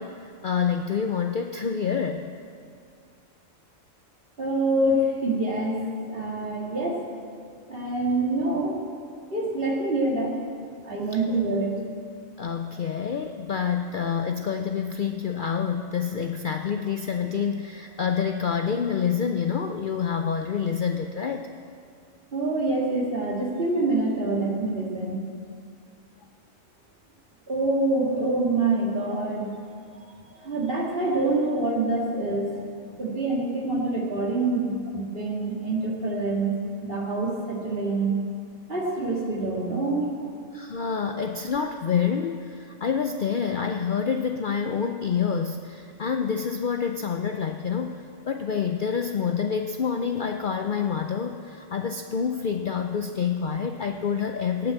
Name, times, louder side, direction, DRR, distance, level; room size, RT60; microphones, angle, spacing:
voice 1, 0.0-2.3 12.4-21.5 40.5-54.7, left 7 dB, 55° left, 5 dB, 0.6 m, -27 dB
voice 2, 4.4-7.0 7.7-8.8 9.3-10.4 10.8-11.8 22.3-25.2 27.5-29.5 30.0-30.1 30.3-32.7 33.0-36.5 36.8-38.2 38.7-40.1, right 2 dB, 45° right, -2 dB, 2.3 m, -26 dB
17.5 x 6.1 x 7.8 m, 2.2 s
omnidirectional pair, 1.4 m